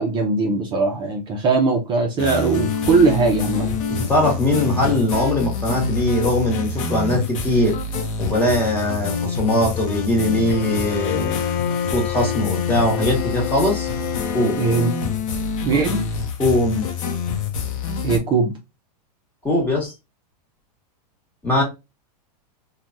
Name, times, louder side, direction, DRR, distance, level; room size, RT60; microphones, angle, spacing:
voice 1, 0.0-3.7 14.6-14.9 15.6-16.0 18.0-18.5, right 4 dB, 25° right, 0.6 m, -20 dB
sound 1, 2.2-18.2, left 5 dB, 55° left, 0.8 m, -26 dB
voice 2, 3.9-7.7 8.2-11.4 11.9-13.9 14.3-14.6 16.4-16.9 19.4-19.9 21.4-21.6, left 1 dB, 10° left, 1.3 m, -21 dB
Bowed string instrument, 10.5-15.2, left 9 dB, 35° left, 0.4 m, -30 dB
3.2 x 2.3 x 2.6 m
supercardioid pair, 140°, 20 cm